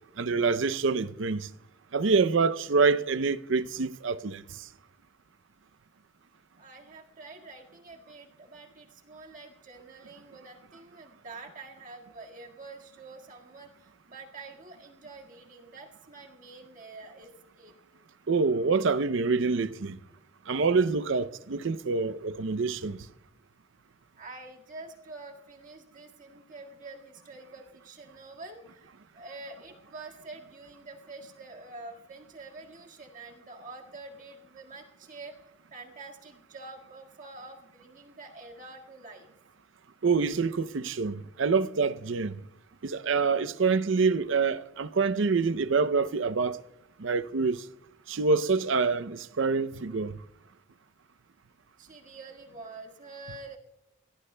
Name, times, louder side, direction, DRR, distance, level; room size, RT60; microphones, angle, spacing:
voice 1, 0.2-1.5 1.9-4.4 18.3-20.0 20.5-23.1 40.0-42.4 42.8-46.6 47.0-47.6 48.1-50.1, right 4 dB, 65° right, 0.5 m, -26 dB
voice 2, 6.6-17.7 24.2-39.3 51.8-53.6, right 3 dB, 40° right, 1.8 m, -47 dB
22.5 x 17.5 x 2.2 m
head